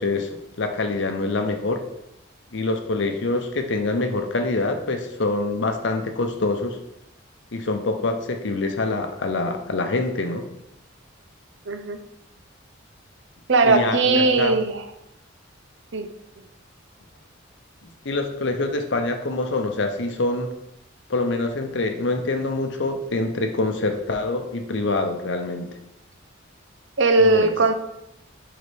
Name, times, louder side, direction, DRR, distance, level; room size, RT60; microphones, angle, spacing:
voice 1, 0.0-1.8 2.5-6.8 7.5-10.4 13.6-14.6 17.8-20.5 21.1-25.7 27.2-27.5, left 2 dB, 60° left, 5 dB, 0.7 m, -25 dB
voice 2, 11.7-12.0 13.5-14.8 15.9-16.1 27.0-27.7, right 3 dB, 65° right, 8 dB, 0.7 m, -19 dB
10.5 x 3.9 x 3.5 m, 0.84 s
head